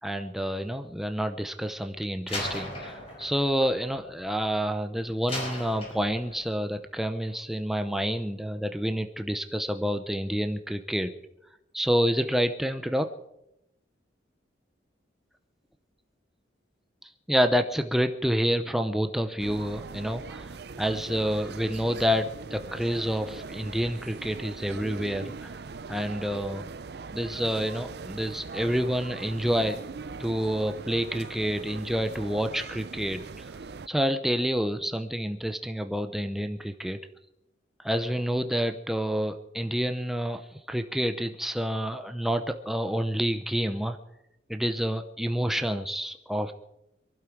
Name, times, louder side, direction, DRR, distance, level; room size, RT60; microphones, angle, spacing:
voice 1, 0.0-11.1 11.7-13.1 17.0-25.6 25.9-26.7 27.1-29.8 30.2-33.5 33.9-37.0 37.8-44.0 44.5-46.5, equal, ahead, 6 dB, 0.6 m, -28 dB
Slam, 2.3-4.7 5.3-6.5, left 1 dB, 30° left, 5.5 m, -38 dB
sound 1, 19.4-33.9, right 4 dB, 60° right, 0.5 m, -41 dB
23.0 x 12.0 x 4.6 m, 0.85 s
head